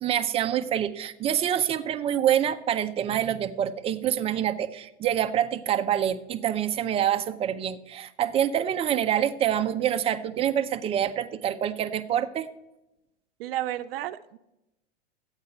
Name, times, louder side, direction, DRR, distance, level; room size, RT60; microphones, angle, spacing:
voice 1, 0.0-12.5, right 10 dB, 15° right, 9 dB, 0.5 m, -26 dB
voice 2, 13.4-14.4, right 13 dB, 55° right, 11 dB, 0.6 m, -32 dB
12.0 x 8.9 x 4.4 m, 0.91 s
hypercardioid pair, 115°, 35 cm